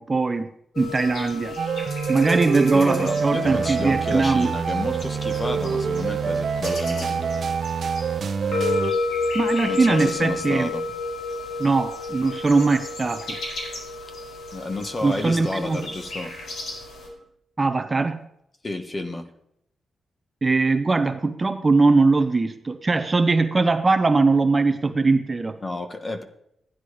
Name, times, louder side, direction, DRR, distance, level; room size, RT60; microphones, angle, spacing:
voice 1, 0.0-1.6 2.1-4.5 9.3-10.7 11.6-13.4 15.0-15.8 17.6-18.2 20.4-25.6, right 3 dB, 25° right, 0.6 m, -21 dB
sound 1, 0.7-17.1, left 3 dB, 70° left, 4.4 m, -32 dB
sound 2, 1.6-8.9, right 6 dB, 55° right, 0.8 m, -26 dB
voice 2, 2.7-7.5 9.7-10.8 14.5-16.6 18.6-19.3 25.6-26.2, left 2 dB, 25° left, 1.2 m, -31 dB
14.0 x 10.0 x 5.0 m
wide cardioid pair, 140°, 0 cm